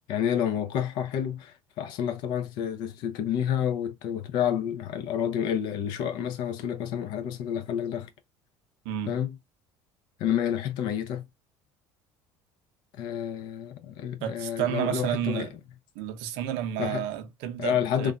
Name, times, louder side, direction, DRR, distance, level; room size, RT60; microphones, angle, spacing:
voice 1, 0.1-8.1 9.1-9.4 10.2-11.3 13.0-15.5 16.8-17.1 17.6-18.1, left 9 dB, 65° left, 0.6 m, -29 dB
voice 2, 8.9-9.2 14.2-15.5 16.0-18.1, right 10 dB, 85° right, 0.6 m, -31 dB
3.2 x 2.2 x 2.4 m
cardioid pair, 115°, 8 cm